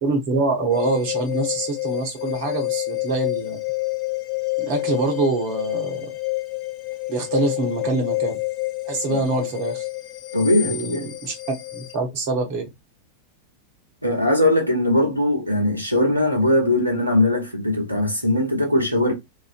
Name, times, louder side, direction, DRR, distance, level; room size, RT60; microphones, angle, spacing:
voice 1, 0.0-3.6 4.6-6.1 7.1-8.3 8.9-9.8 10.7-12.6, right 3 dB, 50° right, 1.0 m, -25 dB
sound 1, 0.7-12.0, left 21 dB, 40° left, 0.4 m, -29 dB
voice 2, 10.3-11.1 14.0-19.1, left 1 dB, 85° right, 0.8 m, -20 dB
2.6 x 2.5 x 2.5 m
figure-of-eight pair, 90°, 0 cm